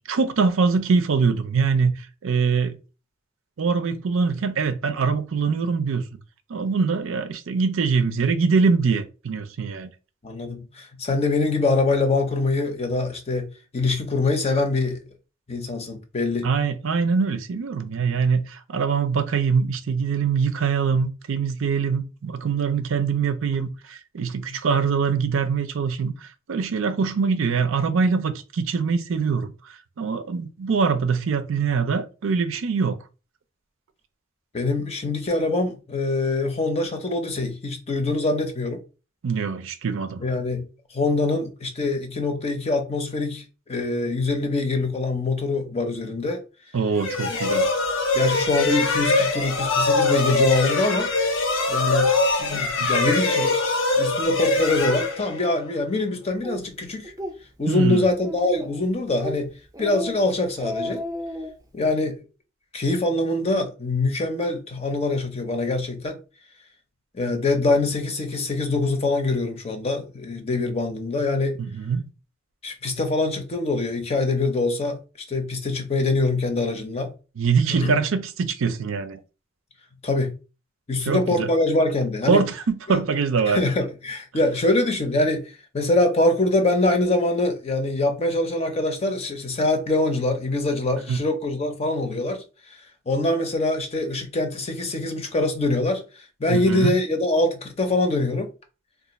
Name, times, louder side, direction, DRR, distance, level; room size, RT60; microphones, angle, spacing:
voice 1, 0.1-2.8 3.6-6.0 6.5-9.9 16.4-29.5 30.0-33.0 39.2-40.2 46.7-47.7 52.8-52.9 57.7-58.1 71.6-72.1 77.4-79.2 81.1-81.5 82.3-83.6 91.1-91.2 96.5-96.9, right 5 dB, 90° right, 0.5 m, -23 dB
voice 2, 10.2-13.5 13.7-15.0 15.5-16.5 34.5-38.8 40.2-40.7 40.9-43.4 43.7-46.4 47.3-47.4 48.1-51.1 51.7-52.1 52.4-53.6 54.0-57.1 57.6-59.5 59.8-61.0 61.7-62.2 62.7-66.2 67.1-71.6 72.6-75.0 75.3-77.1 77.7-78.0 80.0-80.4 80.9-82.4 82.9-83.0 83.5-92.4 93.1-96.0 96.4-98.5, left 2 dB, 30° left, 0.5 m, -24 dB
sound 1, 47.0-55.7, left 3 dB, 80° left, 0.7 m, -23 dB
Speech, 56.4-56.6 57.0-57.3 57.7-57.8 58.2-58.8 59.2-59.4 59.7-60.2 60.5-61.5, equal, 15° right, 0.5 m, -32 dB
2.4 x 2.4 x 4.0 m
head